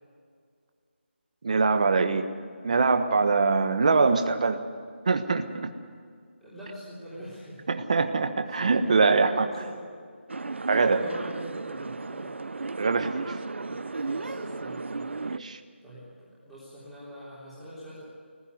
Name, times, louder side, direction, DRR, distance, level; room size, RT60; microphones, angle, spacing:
voice 1, 1.4-2.3 2.6-4.6 5.0-5.7 7.7-9.5 10.7-11.0 12.8-13.4 15.2-15.6, right 4 dB, 35° right, 8 dB, 1.3 m, -23 dB
voice 2, 6.4-7.6 8.6-9.9 10.8-12.3 13.6-15.2 15.8-18.0, equal, ahead, -11 dB, 3.5 m, -43 dB
sound 1, 10.3-15.4, right 3 dB, 70° right, 0.6 m, -34 dB
19.5 x 15.0 x 9.6 m, 2.1 s
figure-of-eight pair, 175°, 7 cm